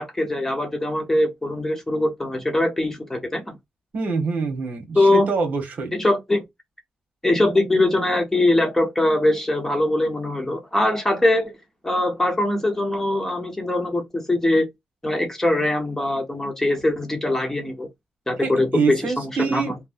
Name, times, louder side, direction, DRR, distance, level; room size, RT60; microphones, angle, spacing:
voice 1, 0.0-3.6 4.9-5.3 5.9-6.4 7.2-11.5 11.8-14.6 15.0-17.9 18.3-19.8, left 1 dB, 10° left, 1.0 m, -22 dB
voice 2, 3.9-5.9 18.4-19.7, right 4 dB, 55° right, 1.2 m, -25 dB
3.1 x 2.1 x 2.4 m
cardioid pair, 75°, 3 cm